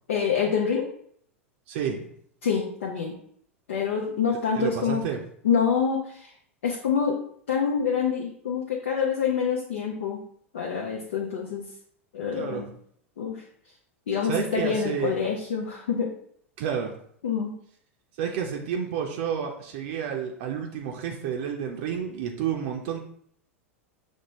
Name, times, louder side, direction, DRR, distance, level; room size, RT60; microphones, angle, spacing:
voice 1, 0.1-0.8 2.4-3.1 3.7-5.0 5.4-6.3 6.6-7.2 7.5-10.2 10.5-11.6 12.1-12.7 13.2-13.4 14.1-16.1 17.2-17.5, left 6 dB, 70° left, -1 dB, 0.6 m, -26 dB
voice 2, 1.7-2.0 4.5-5.2 12.3-12.7 14.2-15.2 16.6-17.0 18.2-23.0, right 8 dB, 55° right, 1 dB, 0.5 m, -30 dB
6.2 x 2.1 x 3.0 m, 0.64 s
figure-of-eight pair, 90°, 7 cm